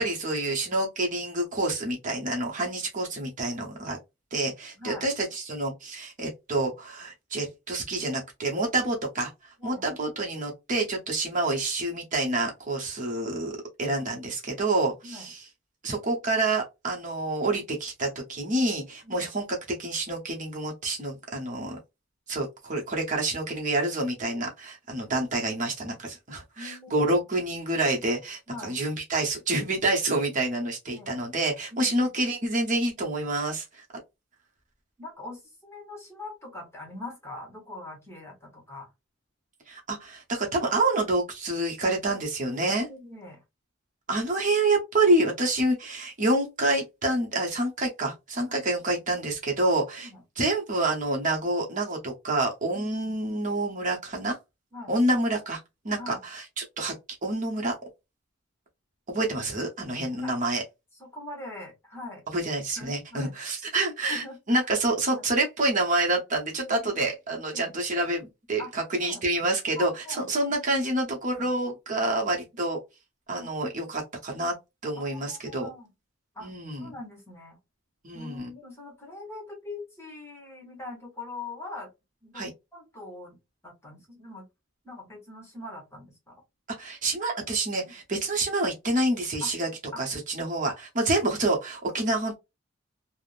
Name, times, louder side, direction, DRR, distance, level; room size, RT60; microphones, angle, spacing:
voice 1, 0.0-4.0 4.3-13.5 13.8-15.4 15.8-21.8 22.3-33.8 39.7-42.9 44.1-50.1 50.4-54.4 54.9-55.6 55.8-56.9 57.2-57.7 59.1-60.6 62.3-72.8 73.3-74.5 74.8-75.7 76.4-76.9 78.0-78.5 82.3-82.5 86.8-89.7 90.0-92.4, right 2 dB, 40° right, 0.8 m, -28 dB
voice 2, 4.8-5.1 9.6-9.8 15.0-15.3 19.0-19.3 26.6-27.1 28.5-28.8 30.9-31.2 31.7-32.0 35.0-38.9 42.9-43.4 48.4-48.6 50.0-50.2 52.7-53.1 54.7-55.0 55.9-56.2 60.1-60.3 61.0-62.2 62.8-63.3 64.1-64.7 65.1-65.3 66.6-66.9 67.5-67.7 68.6-68.7 69.0-69.2 69.8-70.3 71.3-71.5 72.5-72.6 73.3-73.5 75.0-75.9 76.3-76.5 76.8-77.6 78.1-81.9 82.2-83.4 83.6-84.5 84.8-86.4 87.8-87.9 89.4-89.5 89.9-90.0, left 2 dB, 15° left, 1.1 m, -42 dB
3.5 x 2.0 x 2.4 m
head